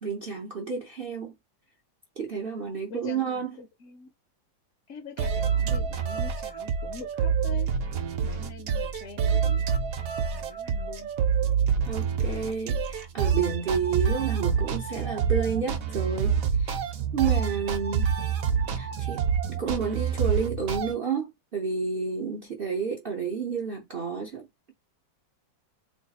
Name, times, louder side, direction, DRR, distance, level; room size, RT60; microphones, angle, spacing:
voice 1, 0.0-1.3 2.2-3.5 11.9-16.8 17.1-18.1 18.8-19.2 19.5-24.7, right 6 dB, 85° right, 0.5 m, -30 dB
voice 2, 2.9-4.1 4.9-7.7 8.2-9.7 10.2-11.1, left 4 dB, 60° left, 0.8 m, -44 dB
sound 1, 5.2-20.9, right 7 dB, 65° right, 0.9 m, -27 dB
3.2 x 2.3 x 4.0 m
omnidirectional pair, 2.1 m